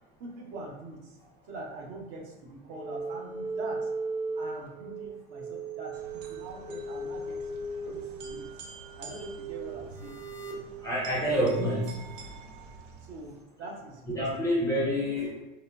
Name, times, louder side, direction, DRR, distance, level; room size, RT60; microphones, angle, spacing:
voice 1, 0.2-1.2 1.5-3.9 4.4-7.5 7.9-8.7 9.0-10.2 13.0-14.3, right 2 dB, 60° right, -1 dB, 0.8 m, -43 dB
sound 1, 2.7-11.9, right 3 dB, 15° right, 0.8 m, -37 dB
sound 2, 5.9-13.4, right 3 dB, 85° right, 0.6 m, -47 dB
voice 2, 10.8-12.0 14.1-15.4, equal, 10° left, -6 dB, 0.4 m, -27 dB
3.0 x 2.1 x 2.3 m, 1.1 s
hypercardioid pair, 115°, 38 cm